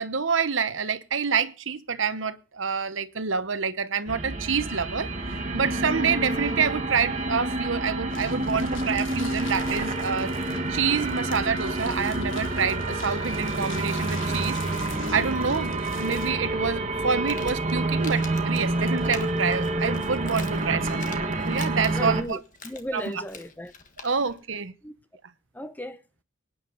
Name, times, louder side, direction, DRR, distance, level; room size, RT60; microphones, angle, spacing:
voice 1, 0.0-10.3 10.7-14.6 15.1-21.2 21.5-22.4 22.9-23.1 24.0-24.7, right 5 dB, 65° right, 1.0 m, -27 dB
sound 1, 4.1-22.2, right 2 dB, 35° right, 1.4 m, -28 dB
sound 2, 8.1-16.3, left 6 dB, 65° left, 1.2 m, -43 dB
Crumpling crinkling, 17.0-24.4, left 5 dB, 40° left, 1.5 m, -45 dB
voice 2, 21.9-23.7 24.8-24.9 25.5-26.0, equal, 10° left, 0.7 m, -35 dB
24.0 x 9.6 x 3.9 m
head